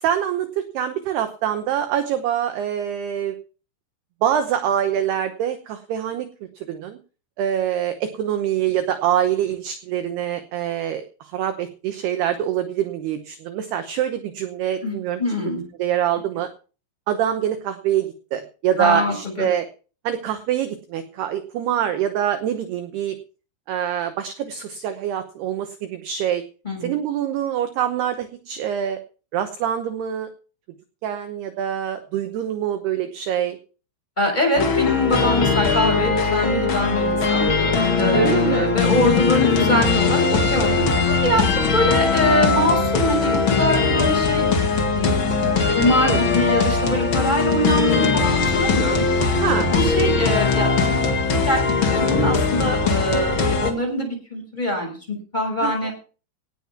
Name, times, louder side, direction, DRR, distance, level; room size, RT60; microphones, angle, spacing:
voice 1, 0.0-0.5 0.7-3.3 4.2-6.3 6.7-7.0 7.4-15.2 15.8-16.5 17.1-19.7 20.0-23.2 23.7-26.4 26.8-29.0 29.3-30.3 31.0-33.6 38.1-38.7 46.0-46.2 49.4-49.7 55.6-55.9, right 10 dB, 70° right, 8 dB, 2.6 m, -25 dB
voice 2, 14.8-15.7 18.8-19.5 26.6-26.9 34.2-44.4 44.9-45.2 45.7-49.1 49.6-51.0 51.3-55.9, left 1 dB, 10° left, 3 dB, 5.7 m, -23 dB
sound 1, 34.5-53.7, left 4 dB, 90° left, 1.1 m, -20 dB
18.0 x 7.4 x 5.9 m, 0.37 s
omnidirectional pair, 5.7 m